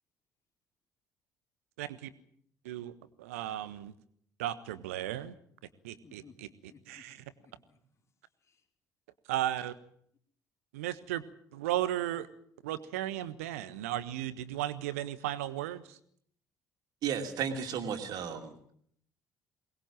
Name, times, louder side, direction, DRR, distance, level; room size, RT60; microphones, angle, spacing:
voice 1, 1.8-2.1 2.6-3.9 4.4-5.3 5.8-6.2 6.9-7.2 9.3-9.7 10.7-11.2 11.5-12.3 12.6-16.0, right 13 dB, 70° right, 16 dB, 1.2 m, -35 dB
voice 2, 6.0-7.8 8.4-8.7, left 4 dB, 35° left, 4 dB, 4.1 m, -59 dB
voice 3, 17.0-18.7, right 7 dB, 50° right, 6 dB, 2.8 m, -34 dB
22.5 x 20.5 x 7.5 m, 0.66 s
figure-of-eight pair, 50°, 8 cm